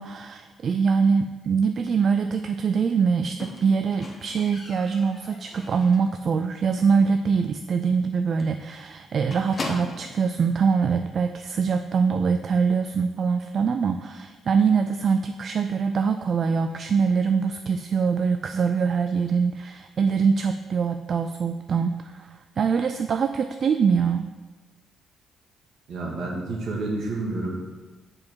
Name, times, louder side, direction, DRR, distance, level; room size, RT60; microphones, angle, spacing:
voice 1, 0.0-24.3, right 5 dB, 50° right, 7 dB, 0.3 m, -23 dB
Squeak, 3.4-6.2 6.5-6.9 7.2-7.3 7.6-7.7 8.0-8.1 8.4-10.2 11.1-11.2, left 2 dB, 35° left, 1.1 m, -38 dB
voice 2, 25.9-27.6, right 2 dB, 70° right, -2 dB, 1.8 m, -29 dB
7.1 x 4.9 x 4.6 m, 1.3 s
cardioid pair, 90°, 0 cm